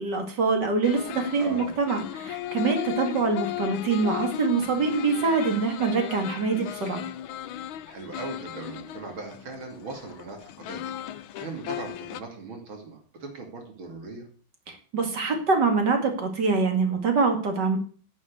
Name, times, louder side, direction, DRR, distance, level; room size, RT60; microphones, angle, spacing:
voice 1, 0.0-7.1 14.7-17.8, right 4 dB, 55° right, 4 dB, 2.8 m, -25 dB
sound 1, 0.8-12.2, left 13 dB, 80° left, 1.5 m, -36 dB
voice 2, 1.4-1.7 7.9-10.9 11.4-14.3, right 3 dB, 80° right, 3 dB, 3.2 m, -39 dB
11.0 x 6.3 x 8.2 m, 0.43 s
omnidirectional pair, 2.2 m